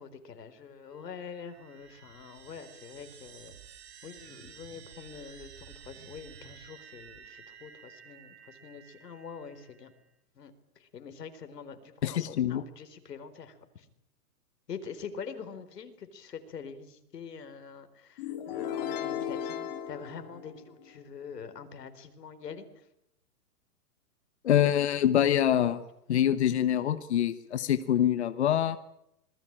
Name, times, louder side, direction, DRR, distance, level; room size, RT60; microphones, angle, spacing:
voice 1, 0.0-3.5 4.0-9.9 10.4-13.9 14.7-22.9, left 6 dB, 90° left, 9 dB, 4.4 m, -45 dB
sound 1, 0.8-10.1, right 8 dB, 45° right, 4.1 m, -52 dB
voice 2, 12.0-12.6 24.4-25.8 26.1-28.8, left 10 dB, 45° left, 11 dB, 1.2 m, -25 dB
sound 2, 18.2-21.0, left 9 dB, 25° left, 3.2 m, -36 dB
26.5 x 20.5 x 8.9 m, 0.79 s
hypercardioid pair, 180°, 47 cm